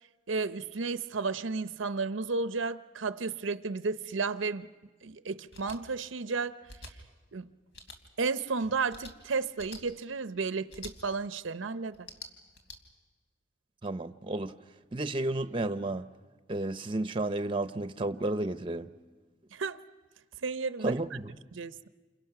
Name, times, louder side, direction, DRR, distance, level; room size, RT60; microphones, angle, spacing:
voice 1, 0.3-4.7 5.0-6.6 7.3-7.5 8.2-12.1 19.5-19.8 20.4-20.9 21.5-21.9, right 4 dB, 85° right, 0.7 m, -33 dB
sound 1, 5.5-5.8 6.7-6.9 7.7-8.0 8.9-9.1 9.6-9.8 10.7-10.9 11.9-12.8, left 2 dB, 75° left, 3.0 m, -46 dB
voice 2, 13.8-14.5 14.9-16.1 16.5-18.9 20.8-21.4, right 2 dB, 25° right, 0.7 m, -32 dB
28.5 x 28.5 x 5.9 m
head